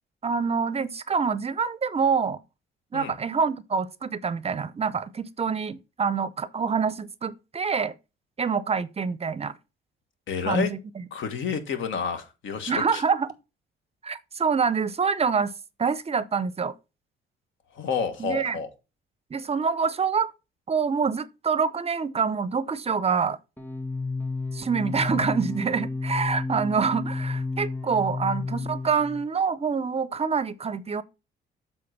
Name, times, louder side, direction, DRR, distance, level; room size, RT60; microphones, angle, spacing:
voice 1, 0.2-2.4 2.9-7.9 8.4-9.5 10.4-10.8 12.7-13.3 14.0-15.5 15.8-16.7 18.2-18.6 19.3-20.3 20.7-23.4 24.5-31.0, right 5 dB, 30° right, 0.5 m, -26 dB
voice 2, 10.3-10.7 11.1-13.0 17.7-18.7, left 6 dB, 75° left, 1.5 m, -29 dB
sound 1, 23.6-29.2, left 3 dB, 10° left, 1.7 m, -31 dB
7.7 x 3.8 x 5.9 m
cardioid pair, 90°, 20 cm